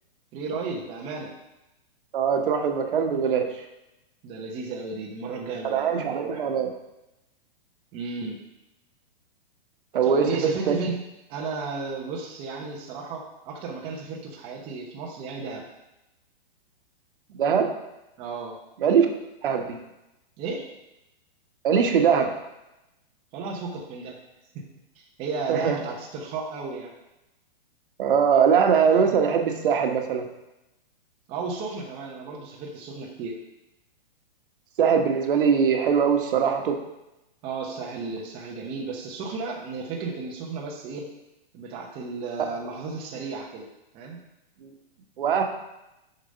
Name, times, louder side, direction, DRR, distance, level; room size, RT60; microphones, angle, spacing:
voice 1, 0.3-1.3 4.2-6.5 7.9-8.4 10.0-15.6 18.2-18.6 20.4-20.7 23.3-24.2 24.5-24.7 25.0-26.9 31.3-33.4 37.4-41.1 41.5-43.7 43.9-44.2, right 4 dB, 20° right, -1 dB, 0.8 m, -34 dB
voice 2, 2.1-3.5 5.6-6.7 9.9-10.8 17.4-17.7 18.8-19.1 19.4-19.8 21.6-22.3 25.5-25.8 28.0-30.2 34.8-36.8 45.2-45.4, right 7 dB, 65° right, 4 dB, 1.3 m, -21 dB
6.9 x 5.3 x 5.2 m, 0.94 s
hypercardioid pair, 160°, 29 cm